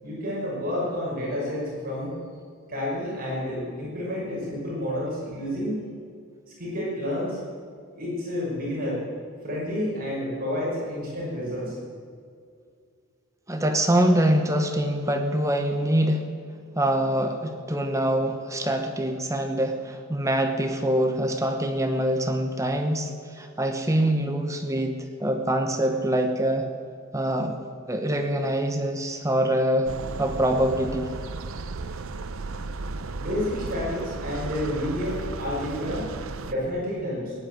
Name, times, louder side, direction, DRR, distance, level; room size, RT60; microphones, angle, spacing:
voice 1, 0.0-2.1 2.7-5.9 6.6-7.4 8.0-9.0 9.4-11.8 33.1-36.1 36.5-37.3, left 1 dB, 40° right, -5 dB, 5.7 m, -30 dB
voice 2, 13.5-16.2 16.7-26.6 27.1-27.5 27.9-29.9 30.2-31.1, right 1 dB, 15° right, 5 dB, 1.0 m, -24 dB
sound 1, 29.9-36.5, right 3 dB, 65° right, 0.7 m, -35 dB
17.5 x 10.5 x 7.6 m, 2.2 s
head